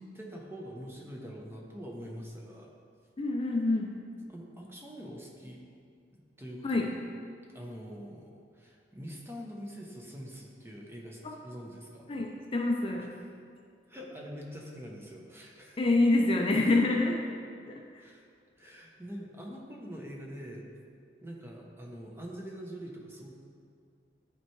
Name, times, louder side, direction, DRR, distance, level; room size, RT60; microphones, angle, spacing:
voice 1, 0.1-2.7 4.3-5.6 6.4-6.9 7.5-12.1 13.9-15.8 18.0-18.2 18.6-20.6 21.2-23.3, equal, 15° right, -1 dB, 0.8 m, -44 dB
voice 2, 3.2-3.9 6.6-6.9 11.2-11.3 12.1-13.1 15.8-17.2 17.7-18.0, left 2 dB, 30° left, 1 dB, 0.5 m, -27 dB
10.0 x 4.4 x 3.2 m, 2.2 s
head